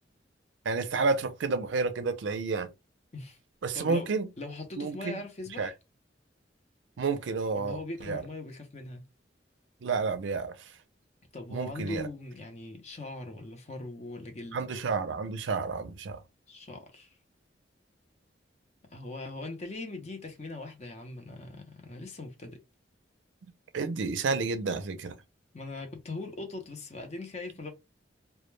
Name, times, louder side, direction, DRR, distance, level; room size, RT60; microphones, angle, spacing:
voice 1, 0.6-2.7 3.6-4.3 4.8-5.2 5.6-5.7 7.0-8.2 9.8-10.7 11.5-12.1 14.5-16.2 23.7-25.1, right 4 dB, 90° right, 0.5 m, -30 dB
voice 2, 3.7-4.1 4.4-5.7 7.5-9.0 11.3-14.7 16.5-17.2 18.8-22.6 25.5-27.7, left 2 dB, 40° left, 0.6 m, -40 dB
2.2 x 2.1 x 3.1 m
head